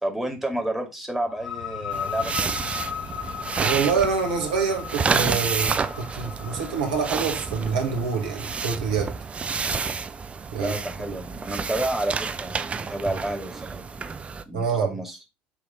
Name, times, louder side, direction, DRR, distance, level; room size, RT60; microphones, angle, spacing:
voice 1, 0.0-2.6 10.6-14.1 14.5-15.2, right 1 dB, 5° right, 2.1 m, -30 dB
sound 1, 1.3-8.8, left 8 dB, 75° left, 0.8 m, -37 dB
sound 2, 1.9-14.4, right 5 dB, 25° right, 0.6 m, -30 dB
voice 2, 3.6-9.2 10.5-10.7 11.1-11.2 14.5-14.9, right 5 dB, 70° right, 1.5 m, -26 dB
9.1 x 3.4 x 3.7 m
figure-of-eight pair, 60°, 5 cm